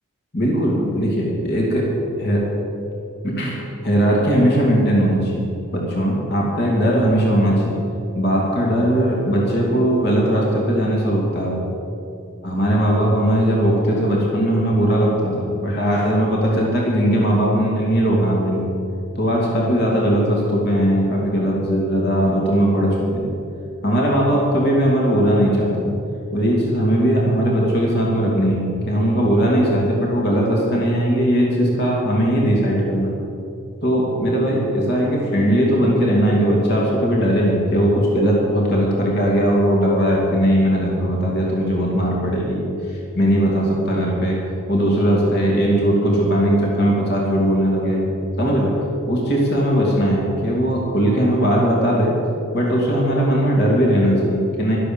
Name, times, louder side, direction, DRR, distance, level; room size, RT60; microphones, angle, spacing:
voice 1, 0.3-1.9 2.2-2.5 3.2-7.8 8.1-11.7 12.4-18.7 19.2-23.3 23.8-25.9 26.3-33.2 33.8-44.4 44.7-48.1 48.4-52.2 52.5-54.8, equal, 50° left, -2 dB, 2.6 m, -19 dB
12.5 x 11.5 x 7.2 m, 2.8 s
head